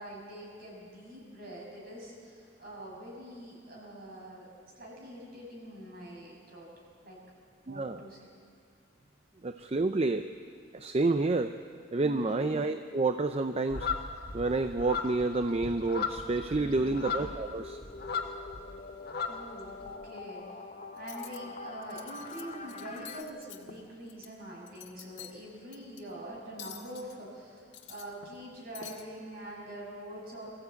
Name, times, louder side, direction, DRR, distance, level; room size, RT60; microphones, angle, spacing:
voice 1, 0.0-4.5 4.7-6.7 7.0-7.2 7.7-8.3 12.0-12.5 16.6-17.0 19.3-20.4 20.9-30.5, right 1 dB, 55° right, -3 dB, 6.5 m, -45 dB
voice 2, 7.7-8.0 9.4-10.3 10.7-11.5 11.9-13.9 14.3-17.8, right 3 dB, 35° right, 9 dB, 0.5 m, -29 dB
sound 1, 13.7-18.6 18.9-19.9, left 5 dB, 55° left, 1.8 m, -36 dB
sound 2, 16.6-23.2, left 3 dB, 35° left, 0.9 m, -45 dB
Cutlery silverware, 21.0-21.4 21.8-22.4 22.7-24.3 24.6-25.4 25.7-26.0 26.6-27.2 27.6-28.5 28.8-29.0, left 10 dB, 80° left, 1.6 m, -48 dB
23.5 x 15.0 x 8.3 m, 2.2 s
head